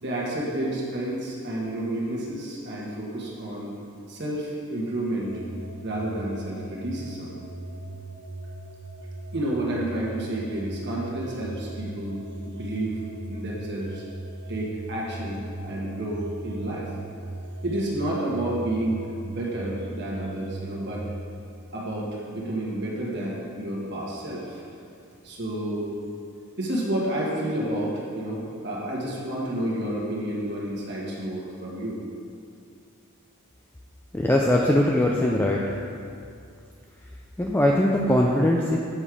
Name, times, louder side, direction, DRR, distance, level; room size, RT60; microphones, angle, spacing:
voice 1, 0.0-3.7 4.1-5.4 5.8-7.3 9.3-13.0 13.3-14.0 14.5-16.9 17.6-21.0 21.7-24.6 25.2-25.9 26.6-32.0, right 1 dB, 50° right, -4 dB, 1.5 m, -30 dB
sound 1, 5.2-21.3, right 2 dB, 85° right, 0.7 m, -39 dB
voice 2, 34.1-35.6 37.4-38.8, left 1 dB, 10° left, -2 dB, 0.4 m, -21 dB
8.4 x 5.5 x 4.8 m, 2.4 s
head